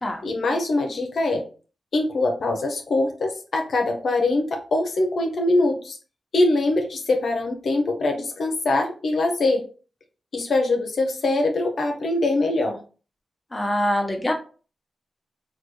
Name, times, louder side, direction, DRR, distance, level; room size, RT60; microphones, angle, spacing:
voice 1, 0.2-1.4 1.9-6.0 6.3-9.6 10.3-12.8, left 2 dB, 75° left, 3 dB, 0.5 m, -23 dB
voice 2, 13.5-14.3, equal, 25° left, 2 dB, 0.8 m, -24 dB
3.3 x 2.2 x 3.0 m, 0.37 s
cardioid pair, 50°, 0 cm